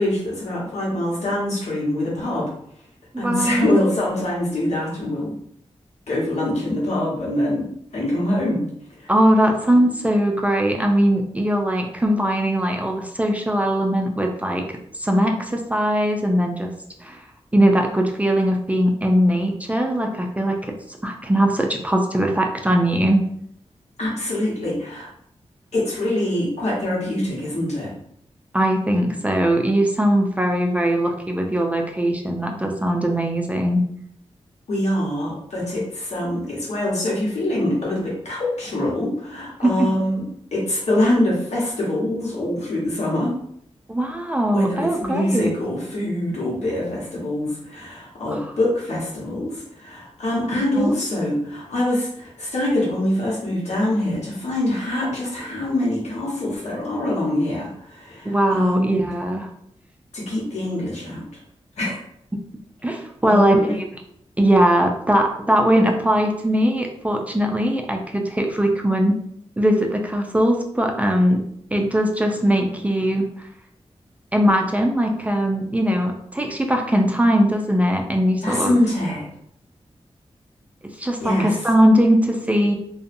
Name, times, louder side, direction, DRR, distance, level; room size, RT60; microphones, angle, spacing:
voice 1, 0.0-2.5 3.2-5.4 6.1-7.7 7.9-8.6 9.0-9.1 24.0-25.1 25.7-27.9 34.7-40.2 40.5-43.3 44.5-58.9 60.1-61.3 61.8-62.0 63.2-63.8 78.4-79.3 81.2-81.6, left 1 dB, 85° left, -5 dB, 1.1 m, -24 dB
voice 2, 3.1-3.7 9.1-16.7 17.0-17.2 17.5-20.7 21.0-23.2 28.5-33.8 39.6-39.9 43.9-45.5 48.3-48.5 50.8-50.9 58.3-59.5 62.8-63.9 64.4-69.2 69.6-71.4 71.7-73.3 74.3-78.8 81.0-82.7, equal, 15° right, 2 dB, 0.3 m, -20 dB
2.7 x 2.2 x 2.5 m, 0.69 s
wide cardioid pair, 115°, 11 cm